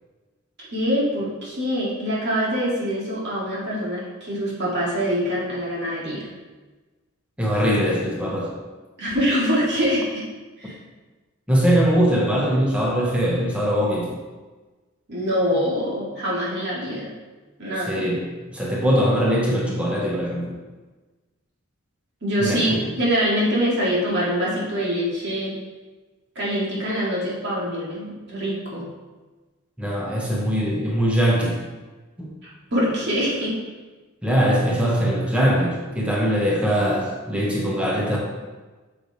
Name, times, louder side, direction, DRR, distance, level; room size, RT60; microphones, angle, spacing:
voice 1, 0.7-6.3 9.0-10.2 10.6-10.8 15.1-17.1 17.6-18.0 22.2-25.5 26.4-28.8 32.7-33.5, equal, 55° right, -6 dB, 2.4 m, -24 dB
voice 2, 7.4-8.5 11.5-14.1 17.9-20.6 22.4-22.8 29.8-31.6 32.2-32.3 34.2-38.2, equal, 5° right, -4 dB, 1.2 m, -21 dB
7.4 x 6.7 x 3.3 m, 1.3 s
head